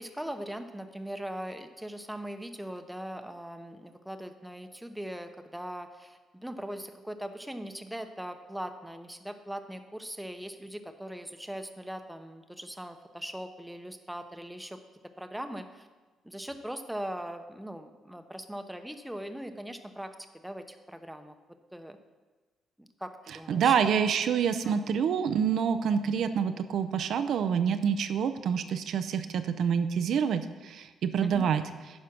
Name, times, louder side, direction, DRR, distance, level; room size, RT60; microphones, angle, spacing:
voice 1, 0.0-14.8 15.2-15.9 16.2-20.1 20.4-21.4 21.7-22.0 22.8-23.7 24.6-24.8 31.2-31.5, equal, 5° right, 7 dB, 0.8 m, -40 dB
voice 2, 23.5-31.6, right 7 dB, 70° right, 9 dB, 0.5 m, -27 dB
9.4 x 5.0 x 5.9 m, 1.3 s
cardioid pair, 90°, 0 cm